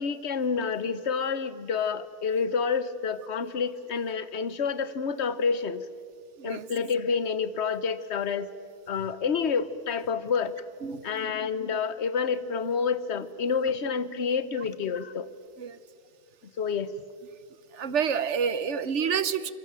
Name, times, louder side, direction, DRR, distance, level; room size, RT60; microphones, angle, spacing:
voice 1, 0.0-5.8 6.4-8.5 8.9-10.5 11.0-15.3 16.6-16.9, left 5 dB, 65° left, 14 dB, 1.3 m, -28 dB
voice 2, 10.8-11.3 15.6-15.8 17.7-19.5, right 7 dB, 80° right, 15 dB, 1.2 m, -28 dB
27.0 x 23.5 x 7.5 m, 2.2 s
omnidirectional pair, 1.2 m